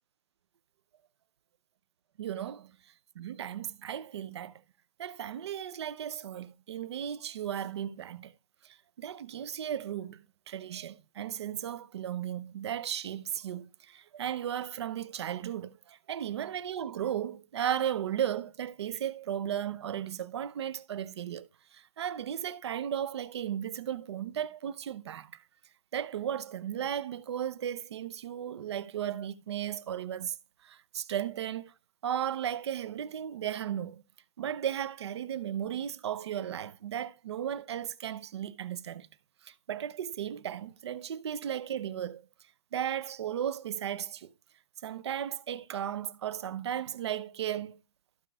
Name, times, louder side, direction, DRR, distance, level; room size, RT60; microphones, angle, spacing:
voice 1, 2.2-2.8 3.2-4.6 5.0-8.3 8.6-21.5 21.7-25.4 25.9-30.4 30.6-31.7 32.0-34.0 34.4-39.1 39.4-42.3 42.7-44.3 44.8-47.8, right 10 dB, 45° right, 0.7 m, -35 dB
14.0 x 4.9 x 3.5 m
hypercardioid pair, 165°, 19 cm